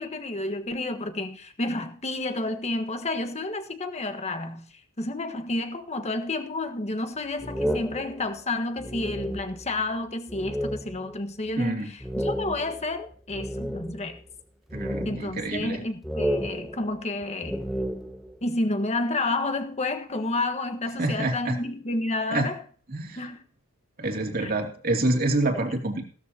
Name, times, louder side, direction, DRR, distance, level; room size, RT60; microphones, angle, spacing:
voice 1, 0.0-4.7 5.0-14.2 15.0-17.7 18.4-22.6 23.2-23.4 24.4-24.5, left 2 dB, 30° left, 1.4 m, -30 dB
sound 1, 7.4-9.9 10.3-11.2 11.5-11.6 12.0-14.2 14.7-15.8 16.0-18.4, equal, ahead, 0.7 m, -32 dB
voice 2, 11.6-11.9 14.7-15.8 21.0-21.6 22.3-22.5 22.9-23.2 24.0-26.0, right 2 dB, 45° right, 2.6 m, -27 dB
16.5 x 13.0 x 2.8 m
head